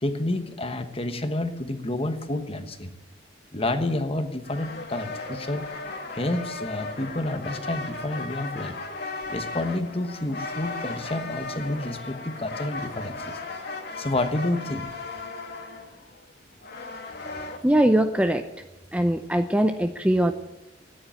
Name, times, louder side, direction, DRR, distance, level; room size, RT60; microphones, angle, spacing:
voice 1, 0.0-2.9 3.5-5.7 6.1-8.8 9.3-13.4 14.0-14.9, left 1 dB, 30° left, 8 dB, 1.2 m, -29 dB
sound 1, 4.4-17.6, left 3 dB, 55° left, 2.0 m, -36 dB
voice 2, 17.6-18.5 18.9-20.3, right 1 dB, 5° right, 7 dB, 0.6 m, -21 dB
13.5 x 10.0 x 8.8 m, 0.98 s
head